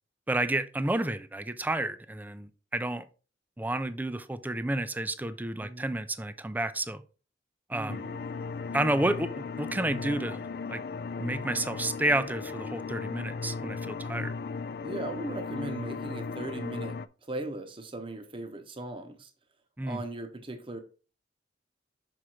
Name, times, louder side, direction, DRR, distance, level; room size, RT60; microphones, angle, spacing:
voice 1, 0.3-3.1 3.6-7.0 7.7-8.1 8.7-10.4 10.7-10.8 11.2-14.3 19.8-20.0, right 1 dB, 10° right, 0.4 m, -30 dB
voice 2, 5.6-5.9 7.7-8.2 14.8-19.3 19.8-20.8, right 2 dB, 30° right, 0.8 m, -38 dB
sound 1, 7.9-17.1, left 4 dB, 55° left, 0.4 m, -36 dB
6.3 x 4.9 x 4.4 m
head